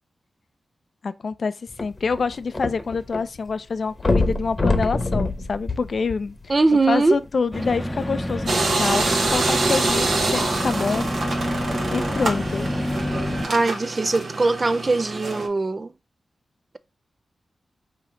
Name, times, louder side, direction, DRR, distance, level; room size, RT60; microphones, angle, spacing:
voice 1, 1.0-1.5 1.8-6.3 6.9-11.1 11.9-12.7, left 5 dB, 70° left, 0.4 m, -26 dB
sound 1, 1.7-3.2 3.5-3.6 4.0-6.6 7.3-7.4, left 2 dB, 40° left, 0.9 m, -24 dB
voice 2, 6.5-7.2 13.5-15.9, right 3 dB, 45° right, 0.5 m, -21 dB
sound 2, 7.5-13.5, left 1 dB, 10° left, 0.7 m, -28 dB
sound 3, 8.5-15.5, right 3 dB, 75° right, 1.1 m, -25 dB
5.1 x 2.8 x 3.6 m
cardioid pair, 50°, 0 cm